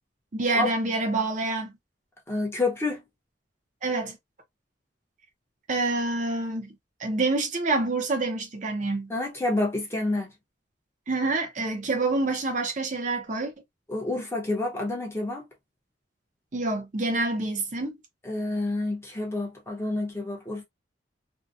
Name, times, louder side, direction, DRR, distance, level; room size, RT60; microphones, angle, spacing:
voice 1, 0.3-1.7 3.8-4.2 5.7-6.7 7.0-9.1 11.1-13.5 16.5-18.0, right 2 dB, 40° right, 0.5 m, -27 dB
voice 2, 2.3-3.0 9.1-10.3 13.9-15.5 18.2-20.6, left 2 dB, 15° left, 0.7 m, -28 dB
2.7 x 2.1 x 2.4 m
head